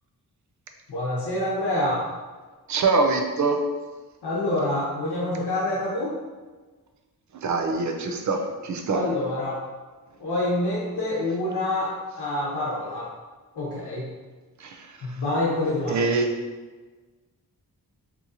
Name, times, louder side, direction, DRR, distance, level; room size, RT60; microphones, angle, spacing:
voice 1, 0.9-2.1 4.2-6.2 8.9-9.6 10.2-13.1 13.5-14.1 15.0-16.0, left 1 dB, 85° left, -6 dB, 0.8 m, -27 dB
voice 2, 2.7-3.6 7.3-9.0 14.6-15.2 15.9-16.3, right 3 dB, 50° right, 4 dB, 0.4 m, -24 dB
3.7 x 2.8 x 2.7 m, 1.3 s
wide cardioid pair, 175°, 39 cm